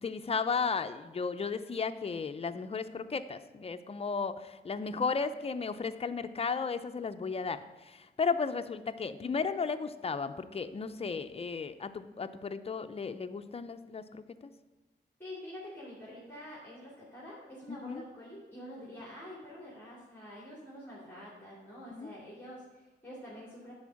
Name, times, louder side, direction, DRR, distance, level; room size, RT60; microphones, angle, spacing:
voice 1, 0.0-14.5 17.7-18.0 21.9-22.1, left 5 dB, 35° left, 9 dB, 0.5 m, -34 dB
voice 2, 15.2-23.7, equal, 10° left, -6 dB, 2.5 m, -47 dB
10.5 x 4.6 x 6.3 m, 1.2 s
wide cardioid pair, 125°, 18 cm